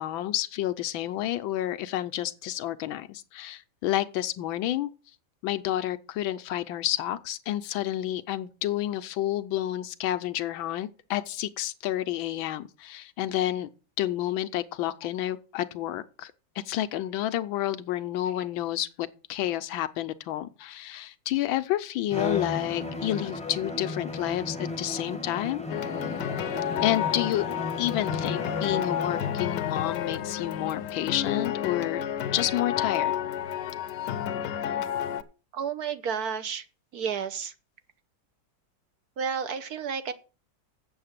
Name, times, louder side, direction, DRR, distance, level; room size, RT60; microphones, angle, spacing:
voice 1, 0.0-4.9 5.4-13.7 14.0-16.3 16.6-25.7 26.8-32.0 32.3-33.1, left 13 dB, 90° left, 1.5 m, -30 dB
Bowed string instrument, 22.1-29.5, left 3 dB, 5° left, 0.8 m, -34 dB
sound 1, 25.7-35.2, left 9 dB, 70° left, 1.2 m, -31 dB
voice 2, 35.5-36.6 36.9-37.5 39.2-40.1, right 7 dB, 60° right, 1.2 m, -31 dB
7.9 x 7.6 x 6.6 m
omnidirectional pair, 2.1 m